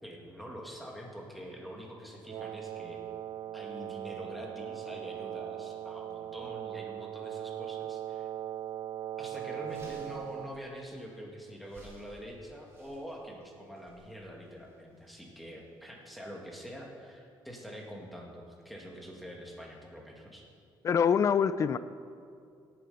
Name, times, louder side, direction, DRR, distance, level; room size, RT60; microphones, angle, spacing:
voice 1, 0.0-3.0 3.5-8.3 9.2-20.4, equal, ahead, -1 dB, 2.0 m, -45 dB
Wind instrument woodwind instrument, 2.2-10.6, right 11 dB, 70° right, 0.4 m, -39 dB
sound 1, 8.5-8.7 9.1-9.2 9.4-16.5, equal, 30° right, 3.9 m, -59 dB
voice 2, 20.8-21.8, left 7 dB, 35° left, 14 dB, 0.4 m, -25 dB
17.5 x 7.6 x 5.6 m, 2.4 s
cardioid pair, 135°, 9 cm